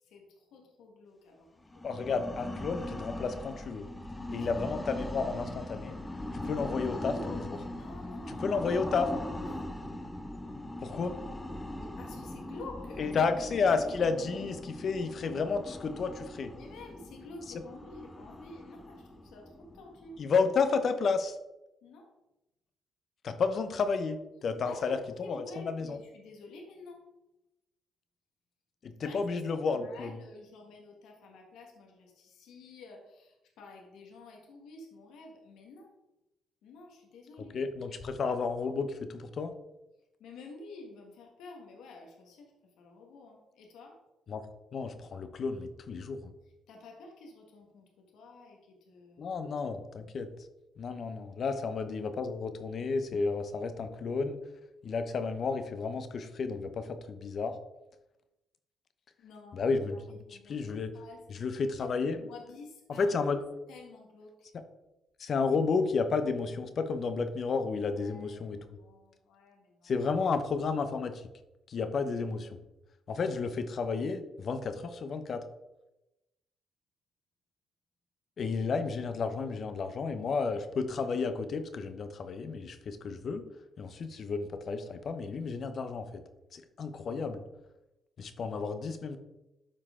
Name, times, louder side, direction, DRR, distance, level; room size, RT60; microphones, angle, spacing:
voice 1, 0.1-1.9 4.2-4.5 6.6-7.4 7.7-8.6 9.3-9.7 11.8-13.1 16.5-20.2 21.8-22.1 24.6-27.0 29.0-29.2 29.7-35.9 36.6-37.6 40.2-42.5 42.8-44.0 46.7-47.8 48.1-49.3 51.4-51.5 59.2-59.7 60.1-61.2 62.1-63.1 63.7-64.5 67.9-69.9, left 3 dB, 85° left, 1 dB, 1.7 m, -50 dB
sound 1, 1.6-20.4, left 1 dB, 15° left, 0.9 m, -40 dB
voice 2, 1.8-3.9 4.3-6.0 6.3-7.6 8.3-9.1 10.8-11.2 13.0-16.5 20.2-21.4 23.2-26.0 28.8-30.2 37.5-39.5 44.3-44.4 44.7-46.3 49.2-50.3 50.8-54.4 54.8-57.6 59.5-61.0 61.3-62.2 62.9-63.4 65.2-68.6 69.8-71.2 71.7-72.6 73.1-75.4 78.4-83.4 83.8-86.2 86.5-87.4 88.2-89.2, left 4 dB, 55° left, 9 dB, 0.9 m, -32 dB
12.5 x 4.5 x 3.7 m, 0.96 s
cardioid pair, 90°, 0 cm